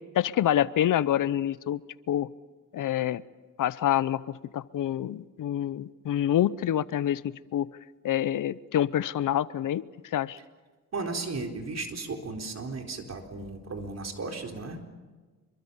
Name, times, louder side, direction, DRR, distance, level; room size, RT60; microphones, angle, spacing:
voice 1, 0.1-1.8 2.1-2.3 2.7-3.2 3.6-7.7 8.0-9.9 10.1-10.4, left 11 dB, 75° left, 18 dB, 0.8 m, -27 dB
voice 2, 10.9-14.8, right 3 dB, 55° right, 3 dB, 4.1 m, -35 dB
26.5 x 23.0 x 7.0 m, 1.3 s
cardioid pair, 80°, 32 cm